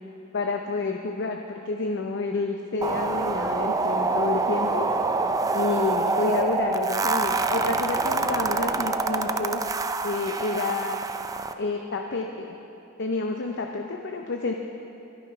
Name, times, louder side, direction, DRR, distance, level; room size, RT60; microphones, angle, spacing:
voice 1, 0.3-4.9 5.5-9.6 10.0-11.0 11.6-12.6 13.0-14.5, left 3 dB, 55° left, 3 dB, 0.7 m, -29 dB
sound 1, 2.8-11.5, right 3 dB, 15° right, 0.4 m, -26 dB
12.5 x 12.0 x 5.6 m, 2.9 s
head